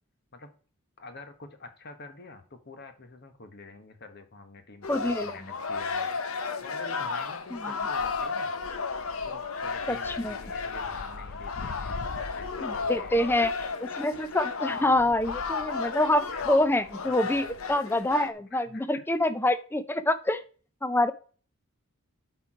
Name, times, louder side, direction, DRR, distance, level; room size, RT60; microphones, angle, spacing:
voice 1, 1.0-8.5 9.2-12.0 12.3-13.3 14.1-14.2 14.8-15.2 16.3-16.5 17.0-17.4 18.5-18.9, left 3 dB, 50° left, 8 dB, 1.2 m, -47 dB
sound 1, 4.8-18.3, left 4 dB, 70° left, 0.8 m, -33 dB
voice 2, 4.9-5.4 7.5-7.8 9.9-10.4 12.6-13.5 13.8-20.4 20.8-21.1, left 1 dB, 10° left, 12 dB, 0.5 m, -26 dB
8.1 x 4.6 x 4.8 m, 0.40 s
head